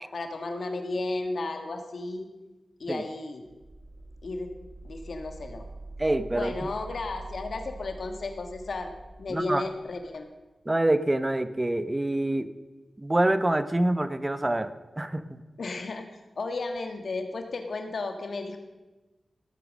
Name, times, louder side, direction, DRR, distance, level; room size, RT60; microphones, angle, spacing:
voice 1, 0.0-2.3 2.8-3.4 4.2-4.5 4.8-5.7 6.3-8.9 9.2-10.3 15.6-16.1 16.4-18.6, left 3 dB, 80° left, 6 dB, 1.6 m, -33 dB
sound 1, 3.5-10.1, right 2 dB, 45° right, 3.4 m, -44 dB
voice 2, 6.0-6.5 9.3-9.6 10.7-12.5 13.0-15.4, right 1 dB, 25° right, 12 dB, 1.0 m, -26 dB
17.5 x 9.0 x 6.4 m, 1.2 s
cardioid pair, 50°, 0 cm